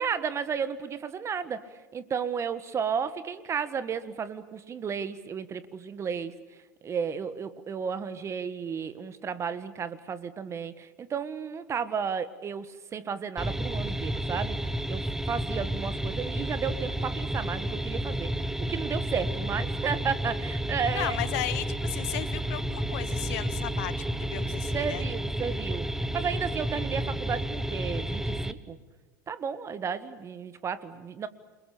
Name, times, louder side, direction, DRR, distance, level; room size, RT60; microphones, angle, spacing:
voice 1, 0.0-1.6 1.9-6.4 6.8-18.3 18.7-21.2 24.7-28.8 29.3-31.3, right 6 dB, 30° right, 13 dB, 1.7 m, -33 dB
sound 1, 13.4-28.5, right 1 dB, 5° right, 1.3 m, -31 dB
voice 2, 20.9-25.0, left 16 dB, 65° left, 13 dB, 1.5 m, -35 dB
29.0 x 22.0 x 8.6 m, 1.1 s
hypercardioid pair, 90°, 10 cm